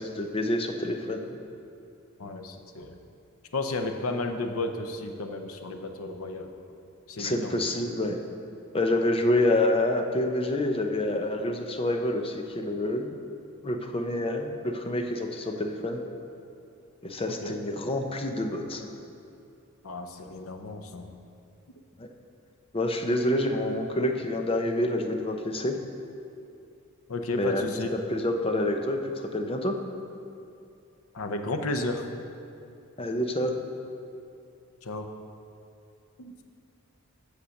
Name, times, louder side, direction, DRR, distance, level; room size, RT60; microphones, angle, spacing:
voice 1, 0.0-1.4 7.1-8.2 8.7-13.1 13.6-16.0 17.0-18.9 22.0-22.1 22.7-25.8 27.4-27.6 27.9-29.0 29.3-29.8 33.0-33.5, left 1 dB, 25° left, 4 dB, 0.7 m, -27 dB
voice 2, 2.2-3.0 3.5-6.5 7.1-7.5 17.3-17.6 19.8-21.2 27.1-27.9 31.1-32.0 34.8-35.1 36.2-36.3, left 2 dB, 80° left, 5 dB, 0.8 m, -33 dB
8.5 x 6.7 x 6.4 m, 2.6 s
head